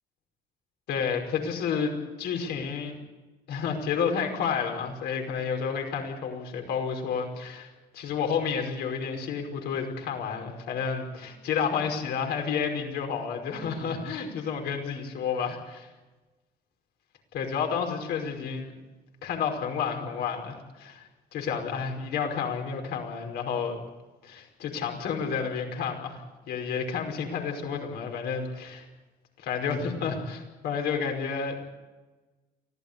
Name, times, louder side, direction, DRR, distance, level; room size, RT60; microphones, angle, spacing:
voice 1, 0.9-1.9 2.2-3.0 3.5-15.9 17.3-18.7 19.2-23.8 24.2-26.2 26.5-28.9 29.4-31.6, left 6 dB, 75° left, 3 dB, 5.3 m, -30 dB
24.5 x 16.5 x 8.3 m, 1.2 s
cardioid pair, 110°, 17 cm